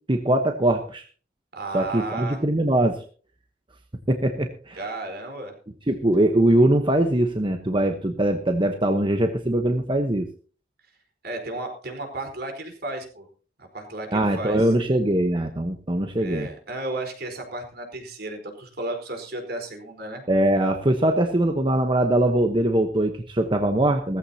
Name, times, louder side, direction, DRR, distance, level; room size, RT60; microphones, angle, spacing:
voice 1, 0.1-1.0 1.7-3.0 4.1-4.8 5.9-10.3 14.1-16.5 20.3-24.2, right 1 dB, 30° right, 5 dB, 1.1 m, -22 dB
voice 2, 1.5-2.4 4.8-5.5 11.2-13.3 13.6-14.7 16.2-20.2, right 2 dB, 60° right, 3 dB, 4.4 m, -34 dB
17.5 x 14.5 x 2.9 m, 0.40 s
head